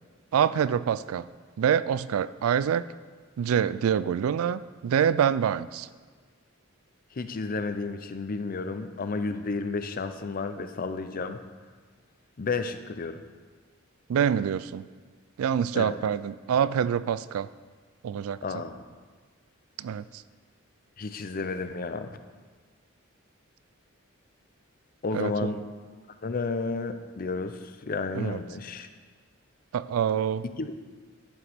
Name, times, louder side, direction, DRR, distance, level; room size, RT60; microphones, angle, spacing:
voice 1, 0.3-1.3 1.6-2.9 3.4-5.9 14.1-14.8 15.4-17.5 18.0-18.4 19.8-20.0 25.1-25.5 28.1-28.4 29.7-30.4, right 8 dB, 85° right, 16 dB, 0.3 m, -26 dB
voice 2, 7.1-11.4 12.4-13.2 15.7-16.0 18.4-18.8 21.0-22.2 25.0-25.6 26.2-28.9 30.6-30.7, left 4 dB, 45° left, 9 dB, 0.6 m, -32 dB
11.0 x 8.5 x 3.5 m, 1.5 s
head